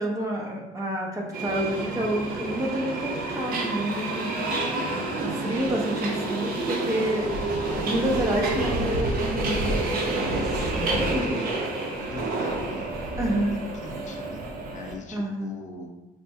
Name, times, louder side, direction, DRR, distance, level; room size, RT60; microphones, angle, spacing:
voice 1, 0.0-4.3 5.2-7.3 7.8-11.3 13.2-13.6 15.1-15.5, right 1 dB, 20° right, -1 dB, 0.7 m, -29 dB
Subway metro underground, 1.3-14.9, right 2 dB, 60° right, 0.6 m, -29 dB
voice 2, 11.0-11.5 12.0-12.9 13.2-15.9, left 3 dB, 45° left, 2 dB, 0.5 m, -40 dB
4.2 x 2.2 x 2.6 m, 1.1 s
cardioid pair, 110°, 17 cm